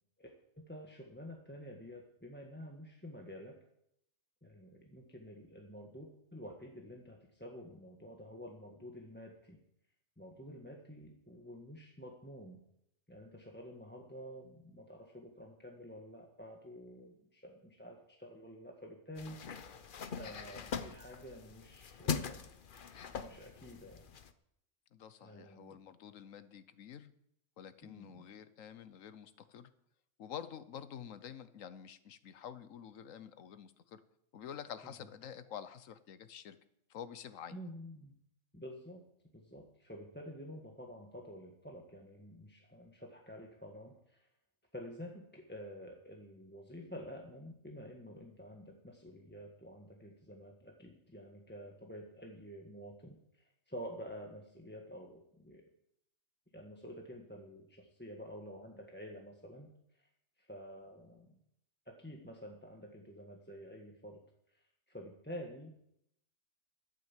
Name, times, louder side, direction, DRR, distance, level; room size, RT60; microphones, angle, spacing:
voice 1, 0.2-3.6 4.4-9.6 10.2-12.6 13.1-19.4 20.2-22.5 23.2-24.1 25.2-25.8 27.8-28.3 37.5-38.1 38.5-39.0 39.3-44.3 44.7-55.6 56.5-60.1 60.4-61.4 61.8-64.2 64.5-65.8, equal, 10° left, 1 dB, 1.4 m, -49 dB
sound 1, 19.2-24.3, left 6 dB, 45° left, 0.9 m, -42 dB
voice 2, 24.9-27.1 27.6-29.7 30.2-34.0 34.3-36.6 36.9-37.7, left 8 dB, 90° left, 13 dB, 1.2 m, -48 dB
12.5 x 9.2 x 7.5 m, 0.76 s
omnidirectional pair, 1.3 m